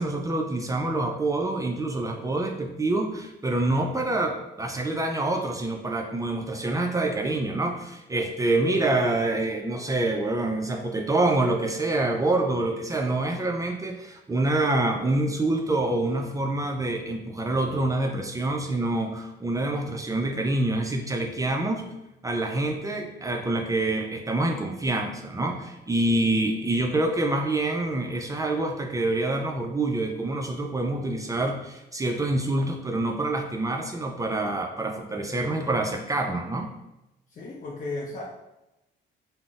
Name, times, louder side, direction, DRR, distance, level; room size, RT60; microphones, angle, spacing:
voice 1, 0.0-21.8 22.2-36.7, right 2 dB, 15° right, 2 dB, 0.3 m, -26 dB
voice 2, 26.1-26.8 37.3-38.2, left 3 dB, 40° left, -4 dB, 0.5 m, -36 dB
3.7 x 2.0 x 2.4 m, 0.94 s
cardioid pair, 90°, 20 cm